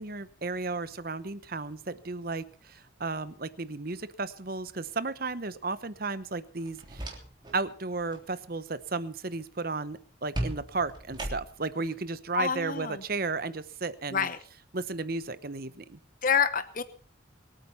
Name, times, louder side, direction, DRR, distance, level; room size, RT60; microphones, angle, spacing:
voice 1, 0.0-7.1 7.5-14.3 14.7-16.0, right 3 dB, 45° right, 14 dB, 1.0 m, -34 dB
sound 1, 6.6-7.6 7.9-8.3 10.3-11.8, right 1 dB, 20° right, 3.4 m, -37 dB
voice 2, 12.3-13.0 14.1-14.4 16.2-16.8, left 6 dB, 40° left, 12 dB, 1.0 m, -27 dB
24.5 x 9.0 x 5.7 m, 0.42 s
head